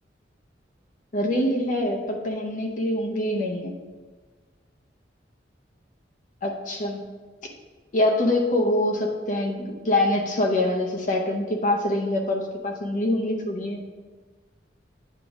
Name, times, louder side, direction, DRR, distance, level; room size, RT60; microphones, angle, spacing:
voice 1, 1.1-3.7 6.4-7.0 7.9-13.8, left 1 dB, 45° left, 1 dB, 0.7 m, -24 dB
8.8 x 3.7 x 5.1 m, 1.4 s
head